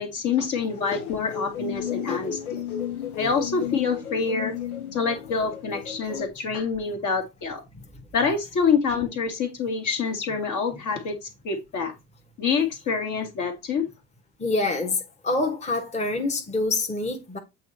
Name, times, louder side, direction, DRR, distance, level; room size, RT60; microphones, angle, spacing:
voice 1, 0.0-2.4 3.2-4.6 4.9-7.6 8.1-11.9 12.4-13.9, left 5 dB, 45° left, 1.6 m, -26 dB
sound 1, 0.7-6.3, left 9 dB, 80° left, 1.0 m, -33 dB
voice 2, 14.4-15.0 15.2-17.4, left 2 dB, 15° left, 1.2 m, -26 dB
7.9 x 3.1 x 4.1 m
figure-of-eight pair, 60°, 43 cm